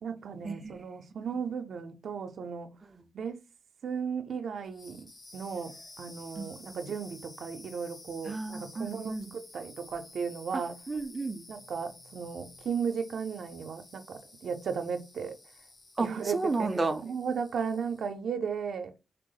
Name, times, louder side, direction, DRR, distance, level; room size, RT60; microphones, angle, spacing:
voice 1, 0.0-2.7 3.1-3.4 3.8-10.7 11.5-15.4 16.0-16.7 17.0-18.9, right 6 dB, 75° right, 0.5 m, -35 dB
sound 1, 4.6-18.2, left 2 dB, 40° left, 0.7 m, -52 dB
voice 2, 6.4-6.8 8.3-9.3 10.5-11.4 16.0-17.0, right 3 dB, 25° right, 0.4 m, -33 dB
3.4 x 2.0 x 3.8 m
wide cardioid pair, 105°, 0 cm